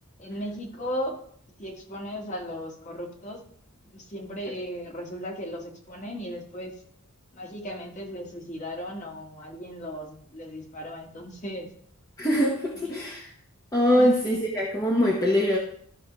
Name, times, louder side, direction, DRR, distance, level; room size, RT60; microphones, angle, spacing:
voice 1, 0.2-1.2 1.6-3.4 3.9-6.7 7.3-11.7 14.0-14.2, equal, 35° left, 0 dB, 1.7 m, -36 dB
voice 2, 12.2-13.3 13.7-15.6, equal, 15° left, -3 dB, 1.1 m, -23 dB
13.0 x 6.0 x 3.1 m, 0.63 s
head